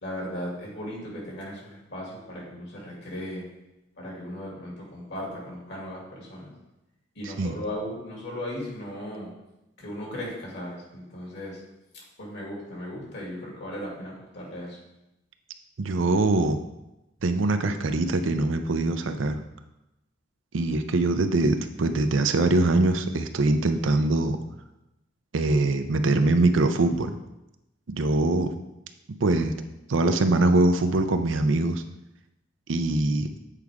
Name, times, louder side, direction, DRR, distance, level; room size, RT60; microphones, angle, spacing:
voice 1, 0.0-3.4 4.0-6.5 7.1-9.3 9.8-11.6 12.2-14.8, left 1 dB, 65° left, -4 dB, 2.6 m, -37 dB
voice 2, 15.8-16.6 17.2-19.4 20.5-24.4 25.3-27.1 27.9-28.5 29.2-29.5 29.9-31.8 32.7-33.3, right 2 dB, 80° right, 8 dB, 0.6 m, -23 dB
8.2 x 4.7 x 3.6 m, 0.92 s
head